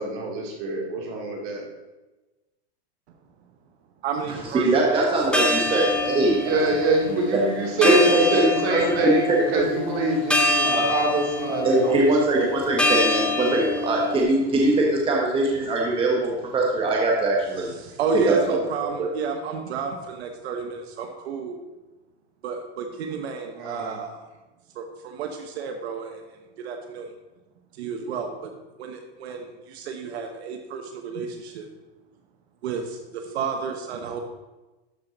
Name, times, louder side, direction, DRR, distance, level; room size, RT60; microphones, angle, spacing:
voice 1, 0.0-1.6 6.4-12.1 12.4-12.5 23.5-23.9, right 2 dB, 40° right, 0 dB, 2.3 m, -25 dB
voice 2, 4.0-5.0 17.8-21.6 22.4-24.2 24.7-26.2 26.6-27.1 27.7-28.5 28.8-31.7 32.6-34.2, right 5 dB, 75° right, 4 dB, 1.1 m, -31 dB
voice 3, 4.5-6.4 7.3-7.4 7.8-9.6 10.6-10.9 11.6-17.7 18.2-18.6 19.0-19.1, right 2 dB, 15° right, -1 dB, 1.1 m, -22 dB
sound 1, 5.2-14.2, left 2 dB, 5° left, 0.7 m, -26 dB
12.0 x 4.4 x 3.9 m, 1.1 s
supercardioid pair, 145°, 32 cm